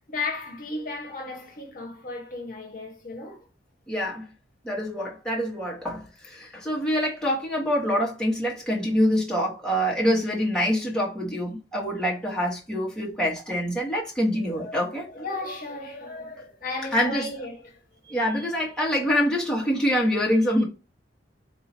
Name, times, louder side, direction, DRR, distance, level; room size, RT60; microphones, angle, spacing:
voice 1, 0.1-3.5 14.4-17.8, left 3 dB, 50° left, 1.1 m, -35 dB
voice 2, 3.9-4.2 4.6-15.1 16.9-17.3 18.1-20.6, equal, 5° left, 1.3 m, -25 dB
4.0 x 2.7 x 4.3 m
head